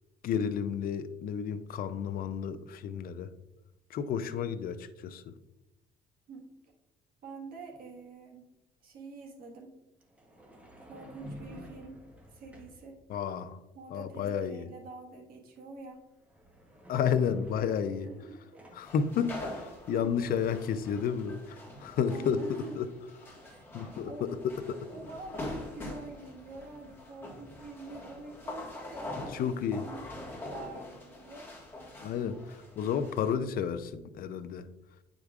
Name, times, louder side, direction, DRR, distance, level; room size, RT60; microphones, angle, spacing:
voice 1, 0.2-3.3 3.9-5.2 13.1-13.6 13.9-14.6 16.9-18.1 18.7-22.4 22.8-22.9 23.7-24.1 24.7-24.8 29.3-29.8 32.0-32.4 32.8-34.7, left 7 dB, 60° left, 11 dB, 0.5 m, -31 dB
voice 2, 7.2-8.5 8.8-9.8 10.8-12.0 12.3-13.0 13.7-16.1 18.0-18.7 19.9-20.2 22.0-22.8 23.5-23.7 24.1-24.4 24.9-31.5, right 3 dB, 60° right, 0 dB, 1.6 m, -46 dB
sound 1, 7.7-7.9 10.0-12.9 15.6-15.8 16.1-19.0 21.4-21.5 21.8-24.1, equal, 10° right, 1.0 m, -52 dB
sound 2, 18.8-33.3, left 2 dB, 15° left, 1.7 m, -44 dB
9.0 x 5.0 x 2.4 m, 1.0 s
cardioid pair, 110°, 17 cm